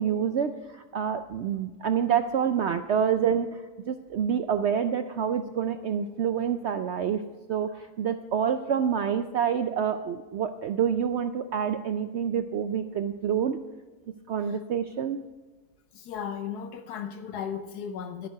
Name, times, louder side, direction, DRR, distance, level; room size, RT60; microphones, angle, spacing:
voice 1, 0.0-13.6 14.3-15.2, right 8 dB, 75° right, 9 dB, 0.6 m, -27 dB
voice 2, 15.9-18.3, left 7 dB, 80° left, 8 dB, 1.3 m, -36 dB
12.5 x 11.5 x 4.6 m, 1.3 s
omnidirectional pair, 1.7 m